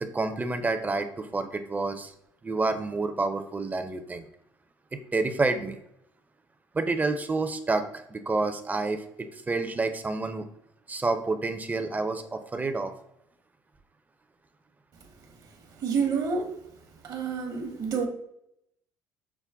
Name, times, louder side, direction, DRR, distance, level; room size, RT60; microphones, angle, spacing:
voice 1, 0.0-2.1 2.4-4.2 4.9-5.8 6.7-10.5 10.9-12.9, right 3 dB, 20° right, 0.5 m, -29 dB
voice 2, 15.8-16.5 17.0-18.1, right 5 dB, 55° right, 1.0 m, -28 dB
5.9 x 2.1 x 3.5 m
supercardioid pair, 95°, 8 cm